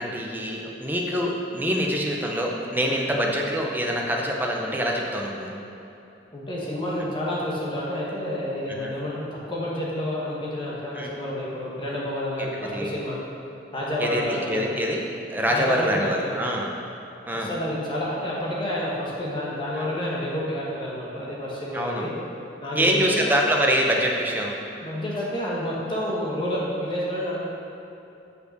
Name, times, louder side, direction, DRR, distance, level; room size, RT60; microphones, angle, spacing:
voice 1, 0.0-5.6 8.8-8.9 10.9-11.1 12.4-12.9 14.0-15.0 15.3-16.7 17.3-17.5 19.7-19.9 21.7-22.0 22.7-24.6, equal, 10° right, -1 dB, 0.7 m, -25 dB
voice 2, 6.3-13.2 13.7-14.8 15.5-16.4 17.3-22.1 22.6-23.2 24.8-27.4, left 1 dB, 25° left, -5 dB, 1.2 m, -29 dB
6.6 x 5.5 x 6.6 m, 2.9 s
head